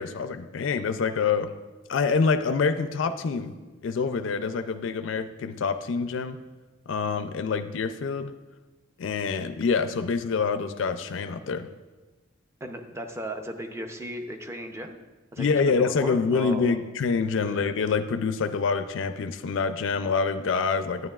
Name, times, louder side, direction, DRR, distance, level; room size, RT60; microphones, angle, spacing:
voice 1, 0.0-1.5 1.9-3.5 3.8-6.4 6.9-8.3 9.0-11.7 15.4-21.1, left 5 dB, 65° left, 9 dB, 0.4 m, -26 dB
voice 2, 12.6-15.0 15.3-16.8 17.4-17.6, right 1 dB, 15° right, 5 dB, 0.5 m, -36 dB
11.0 x 9.4 x 2.3 m, 1.2 s
head